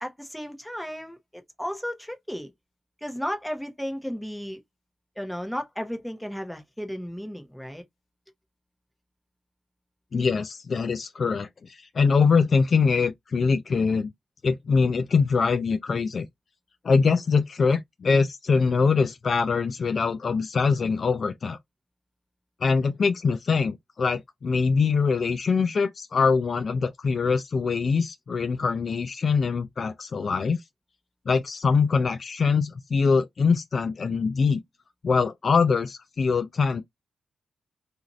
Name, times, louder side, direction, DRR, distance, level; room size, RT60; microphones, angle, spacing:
voice 1, 0.0-2.5 3.0-4.6 5.2-7.8, equal, 5° left, 0.8 m, -34 dB
voice 2, 10.1-14.1 14.4-16.3 16.8-21.6 22.6-30.6 31.3-34.6 35.0-36.8, left 5 dB, 55° left, 0.3 m, -23 dB
2.6 x 2.4 x 3.0 m
cardioid pair, 80°, 0 cm